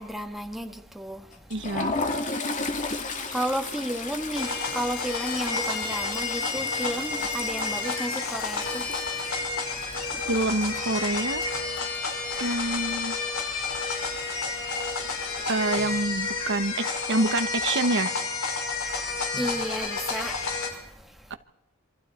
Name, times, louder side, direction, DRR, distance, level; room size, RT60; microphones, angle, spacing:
voice 1, 0.0-1.7 2.7-3.0 3.3-9.3 10.0-10.1 12.3-12.4 14.0-14.1 15.0-15.1 19.4-21.3, equal, ahead, 1.9 m, -33 dB
Toilet flush, 1.3-12.1 12.4-12.6 12.9-13.1 14.0-14.6, left 3 dB, 35° left, 2.2 m, -34 dB
voice 2, 1.5-1.9 10.3-11.4 12.4-13.2 15.5-18.1, right 2 dB, 60° right, 1.2 m, -27 dB
sound 1, 4.3-20.7, left 4 dB, 75° left, 5.8 m, -30 dB
27.5 x 26.0 x 4.4 m
head